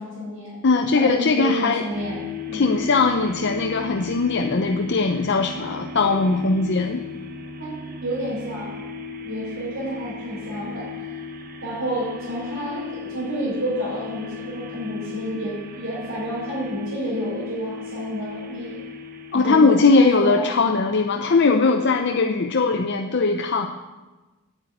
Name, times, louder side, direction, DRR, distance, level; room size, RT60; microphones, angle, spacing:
voice 1, 0.0-0.6 0.9-2.7 7.6-8.8 9.2-11.2 11.6-18.8 19.3-20.6, right 1 dB, 75° right, -8 dB, 5.4 m, -30 dB
voice 2, 0.6-1.9 2.5-7.1 19.3-23.7, left 4 dB, 60° left, 3 dB, 0.7 m, -20 dB
sound 1, 1.9-20.2, left 5 dB, 45° right, 1.1 m, -37 dB
9.0 x 8.5 x 9.2 m, 1.2 s
head